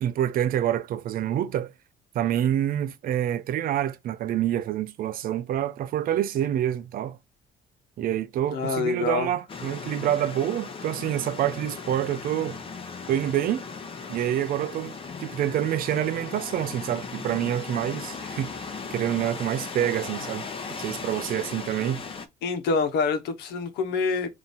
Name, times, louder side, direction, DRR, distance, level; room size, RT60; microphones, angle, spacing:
voice 1, 0.0-1.7 2.1-7.2 8.0-12.6 13.1-13.6 14.1-14.9 15.2-20.5 20.8-22.0, right 11 dB, 60° right, 0.5 m, -27 dB
voice 2, 8.5-9.3 22.4-24.3, left 4 dB, 80° left, 1.0 m, -26 dB
sound 1, 9.5-22.3, left 5 dB, 35° left, 0.8 m, -37 dB
3.6 x 2.8 x 4.0 m
cardioid pair, 110°, 17 cm